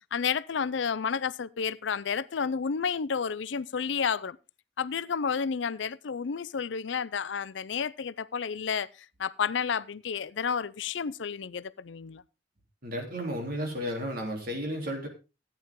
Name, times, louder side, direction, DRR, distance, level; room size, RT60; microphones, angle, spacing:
voice 1, 0.1-4.4 4.8-8.9 9.2-12.2, left 6 dB, 75° left, 0.5 m, -31 dB
voice 2, 12.8-15.1, equal, 50° right, 3.2 m, -33 dB
14.0 x 9.0 x 3.7 m
head